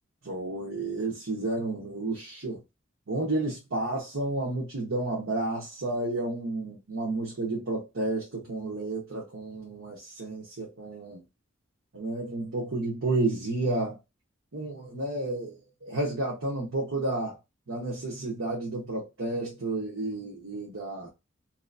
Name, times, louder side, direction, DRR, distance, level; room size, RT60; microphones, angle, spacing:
voice 1, 0.2-2.6 3.1-11.2 11.9-14.0 14.5-17.4 17.7-21.1, right 2 dB, 85° right, 1.1 m, -31 dB
3.1 x 2.9 x 2.5 m
head